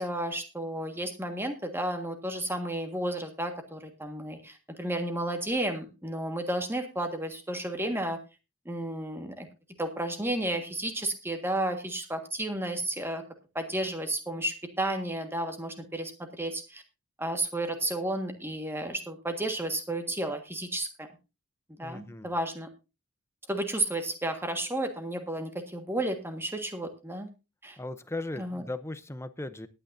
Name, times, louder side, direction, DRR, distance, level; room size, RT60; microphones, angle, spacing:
voice 1, 0.0-8.2 8.6-9.5 9.8-13.2 13.5-16.8 17.2-21.1 21.8-22.7 23.5-27.3 27.6-27.8 28.4-28.6, right 1 dB, 10° right, 6 dB, 1.6 m, -32 dB
voice 2, 21.8-22.3 27.8-29.7, left 2 dB, 10° left, 12 dB, 0.6 m, -37 dB
20.5 x 8.9 x 2.6 m, 0.28 s
head